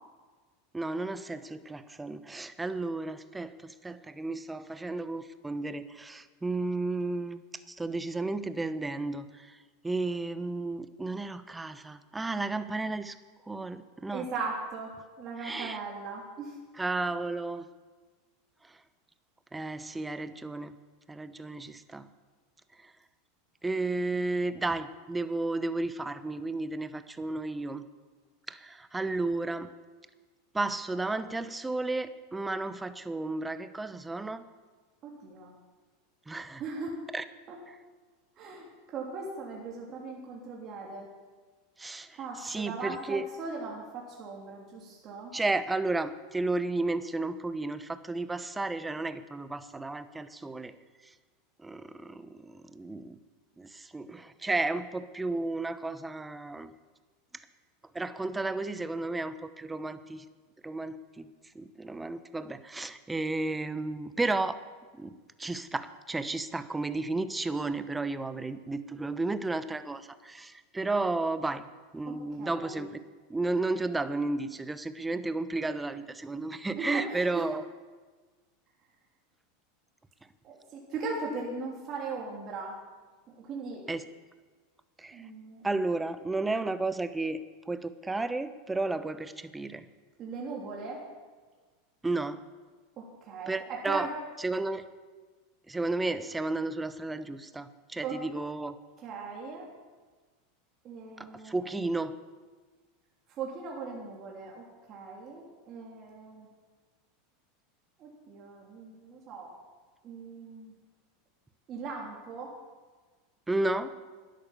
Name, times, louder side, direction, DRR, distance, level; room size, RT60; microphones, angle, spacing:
voice 1, 0.7-9.6 9.8-13.2 13.5-14.3 15.4-15.8 16.7-17.7 18.6-18.8 19.5-20.7 21.1-22.1 22.8-22.9 23.6-27.9 28.5-29.7 30.5-34.5 36.3-36.6 37.1-37.2 37.7-37.8 41.8-43.3 45.3-50.7 51.0-51.1 51.6-53.2 53.6-56.7 57.9-60.3 60.6-64.6 64.9-71.7 71.9-73.0 73.3-77.6 83.9-84.1 85.0-85.3 85.6-89.8 92.0-92.4 93.5-94.1 94.4-94.9 95.7-98.8 101.2-102.1 113.5-113.9, right 2 dB, 10° right, 12 dB, 0.9 m, -33 dB
voice 2, 14.1-14.9 15.2-16.5 35.0-35.5 36.6-36.9 37.5-37.6 38.4-41.1 42.2-45.3 72.0-72.9 76.7-77.5 80.4-82.7 83.4-83.8 85.1-85.6 90.2-91.0 93.0-94.1 98.0-98.2 99.0-99.7 100.8-101.7 103.4-106.5 108.0-109.5 110.0-110.7 111.7-112.5, right 4 dB, 40° right, -3 dB, 3.0 m, -39 dB
12.0 x 10.5 x 7.0 m, 1.4 s
hypercardioid pair, 100°, 0 cm